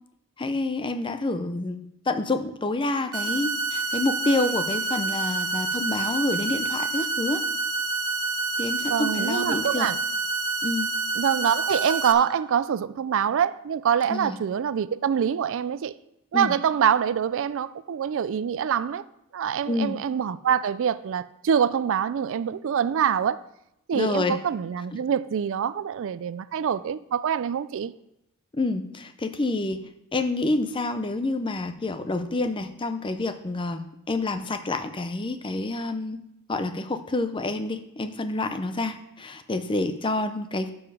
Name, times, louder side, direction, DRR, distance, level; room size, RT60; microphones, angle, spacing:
voice 1, 0.4-7.4 8.6-9.9 10.6-10.9 14.1-14.4 16.3-16.5 19.7-20.0 23.9-24.4 28.5-29.8 30.1-36.2 36.5-40.7, left 2 dB, 20° left, 0.5 m, -28 dB
sound 1, 3.1-12.1, right 3 dB, 80° right, 1.0 m, -28 dB
voice 2, 8.9-10.0 11.2-15.9 16.3-19.0 19.3-23.4 23.9-27.9, right 8 dB, 60° right, 0.3 m, -25 dB
12.5 x 4.8 x 4.9 m
head